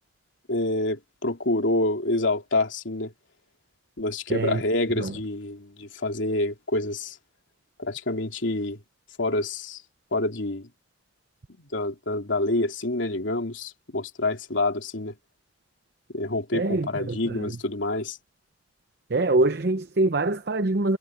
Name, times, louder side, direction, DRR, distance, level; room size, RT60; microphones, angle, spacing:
voice 1, 0.5-3.1 4.0-7.2 7.8-8.8 9.2-9.8 10.1-10.7 11.7-15.1 16.1-18.2, left 2 dB, 85° left, 3.0 m, -27 dB
voice 2, 4.3-4.6 5.0-5.1 16.5-17.5 19.1-21.0, right 2 dB, 60° right, 0.8 m, -24 dB
head